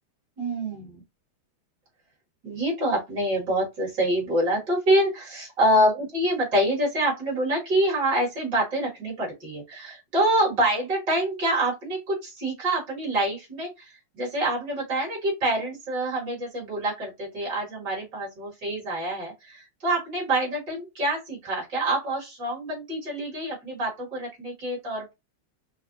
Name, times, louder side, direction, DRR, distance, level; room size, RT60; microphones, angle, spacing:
voice 1, 0.4-1.0 2.4-25.1, right 1 dB, 55° right, -4 dB, 2.7 m, -26 dB
5.6 x 2.2 x 2.6 m, 0.22 s
omnidirectional pair, 2.3 m